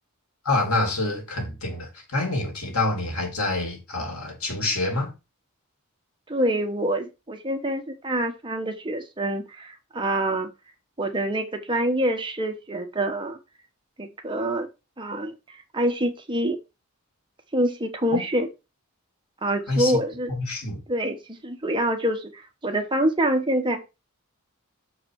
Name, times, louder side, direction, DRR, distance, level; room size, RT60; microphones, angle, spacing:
voice 1, 0.4-5.1 18.1-18.3 19.7-20.0 20.3-20.8, left 2 dB, 80° left, 2.6 m, -27 dB
voice 2, 6.3-10.5 11.0-13.4 14.0-14.7 15.0-15.4 15.7-16.6 17.5-18.5 19.4-20.3 20.9-23.8, right 1 dB, 20° right, 1.1 m, -26 dB
6.7 x 4.8 x 4.6 m
head